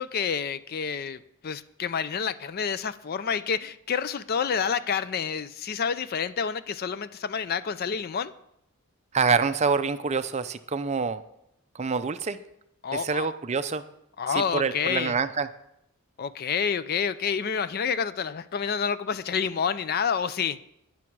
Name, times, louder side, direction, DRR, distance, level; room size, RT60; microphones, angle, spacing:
voice 1, 0.0-8.3 12.8-13.3 14.2-15.1 16.2-20.6, left 6 dB, 45° left, 15 dB, 0.4 m, -28 dB
voice 2, 9.1-11.2 11.7-12.4 12.9-13.8 14.3-15.5, right 5 dB, 30° right, 12 dB, 0.5 m, -26 dB
12.0 x 9.7 x 4.7 m, 0.80 s
head